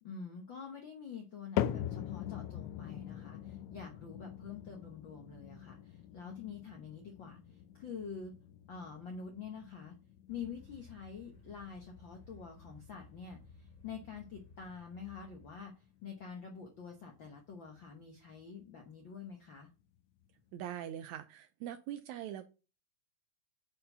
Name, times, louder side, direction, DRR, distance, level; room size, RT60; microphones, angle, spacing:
voice 1, 0.0-8.3 8.7-10.0 10.3-19.7, left 6 dB, 70° left, 1.1 m, -47 dB
sound 1, 1.6-17.9 18.2-18.7 19.3-19.4 20.2-20.3, left 11 dB, 90° left, 1.5 m, -43 dB
sound 2, 10.3-15.6, left 3 dB, 25° left, 1.5 m, -58 dB
voice 2, 20.5-22.4, right 11 dB, 80° right, 1.7 m, -42 dB
8.4 x 4.6 x 5.5 m
omnidirectional pair, 3.8 m